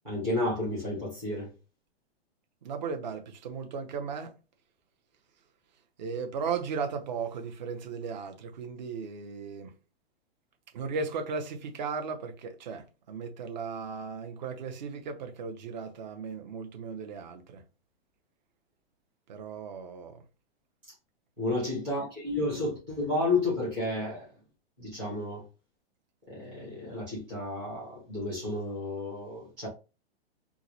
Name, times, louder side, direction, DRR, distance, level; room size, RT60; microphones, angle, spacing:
voice 1, 0.0-1.5 21.4-24.2 24.8-25.4 26.3-29.7, left 2 dB, 5° right, 0.4 m, -31 dB
voice 2, 2.6-4.4 6.0-9.7 10.7-17.6 19.3-20.2, right 5 dB, 45° right, 0.6 m, -36 dB
4.6 x 2.0 x 2.7 m
hypercardioid pair, 175°, 33 cm